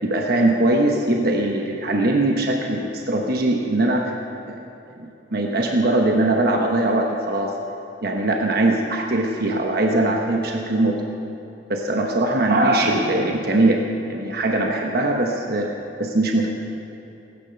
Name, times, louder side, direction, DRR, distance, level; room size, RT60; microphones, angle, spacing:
voice 1, 0.0-4.2 4.5-4.6 5.0-7.5 8.0-11.0 11.7-15.7 16.0-16.5, right 2 dB, 60° right, 1 dB, 1.1 m, -21 dB
17.5 x 9.9 x 5.8 m, 2.9 s
head